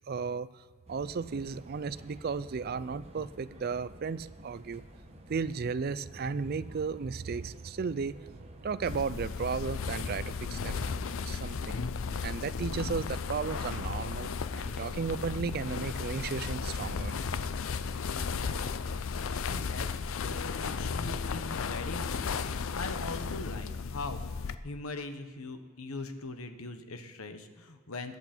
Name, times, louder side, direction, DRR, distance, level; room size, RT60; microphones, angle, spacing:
voice 1, 0.1-4.8 5.3-8.3 8.6-11.8 12.2-14.3 14.6-17.1, right 5 dB, 45° right, 16 dB, 0.4 m, -34 dB
sound 1, 0.9-12.2, right 1 dB, 30° right, 1.2 m, -51 dB
sound 2, 8.9-24.5, left 5 dB, 65° left, 0.5 m, -35 dB
voice 2, 18.1-18.8 19.4-19.9 20.2-24.2 24.6-28.2, left 2 dB, 85° left, 8 dB, 1.2 m, -41 dB
21.0 x 8.2 x 4.4 m, 1.6 s
head